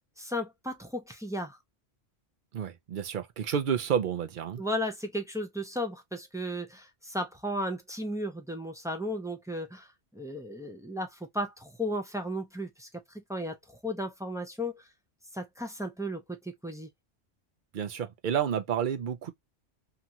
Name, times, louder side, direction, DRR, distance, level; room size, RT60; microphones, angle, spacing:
voice 1, 0.2-1.6 4.6-9.9 10.1-12.9 13.1-13.6 13.8-14.8 15.3-16.9, equal, 5° right, 0.3 m, -35 dB
voice 2, 2.5-4.6 17.7-19.3, right 8 dB, 55° right, 0.7 m, -30 dB
2.9 x 2.4 x 2.7 m
omnidirectional pair, 1.1 m